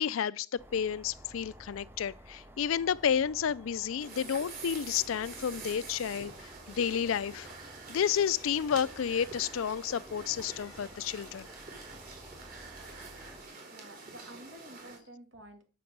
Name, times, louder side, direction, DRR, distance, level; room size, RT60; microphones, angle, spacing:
voice 1, 0.0-7.5 7.9-11.5, left 8 dB, 90° left, 0.4 m, -31 dB
sound 1, 0.6-13.4, right 1 dB, 10° right, 0.7 m, -53 dB
sound 2, 4.0-15.0, right 4 dB, 45° right, 3.1 m, -47 dB
voice 2, 13.7-15.6, right 1 dB, 75° right, 2.4 m, -50 dB
8.5 x 6.8 x 5.3 m
head